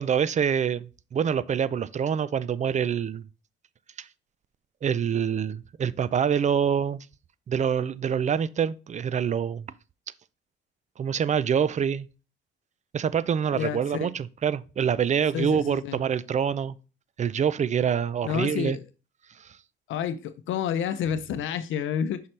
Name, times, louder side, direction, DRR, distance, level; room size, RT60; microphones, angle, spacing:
voice 1, 0.0-3.2 4.0-4.1 4.8-7.1 7.5-9.7 11.0-12.1 12.9-16.7 17.2-18.8, right 7 dB, 35° right, 0.4 m, -26 dB
voice 2, 13.5-14.1 15.3-16.0 18.2-18.8 19.9-22.2, left 8 dB, 80° left, 0.6 m, -29 dB
5.8 x 5.5 x 3.2 m
cardioid pair, 90°, 20 cm